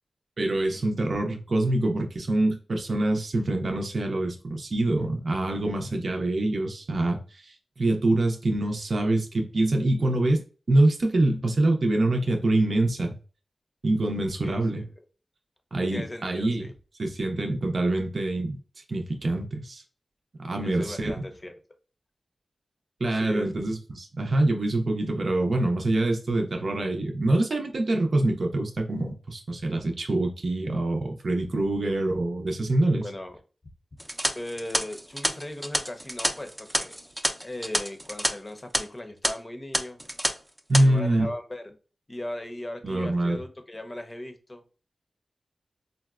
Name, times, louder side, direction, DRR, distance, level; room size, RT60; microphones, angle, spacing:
voice 1, 0.4-10.4 10.7-13.1 13.8-14.8 15.7-16.7 17.0-18.6 18.9-19.8 20.4-21.1 23.0-33.1 40.7-41.3 42.8-43.4, right 2 dB, 65° right, 0.5 m, -25 dB
voice 2, 14.4-14.9 15.9-16.7 20.6-21.5 23.1-23.5 33.0-33.4 34.4-37.0 37.4-40.0 40.7-41.7 42.1-44.6, left 1 dB, 35° left, 0.7 m, -38 dB
sound 1, 34.0-38.3 38.6-38.8 39.2-39.3 39.7-40.3 40.6-40.8, equal, 5° right, 0.5 m, -28 dB
3.8 x 2.1 x 2.3 m
cardioid pair, 45°, 0 cm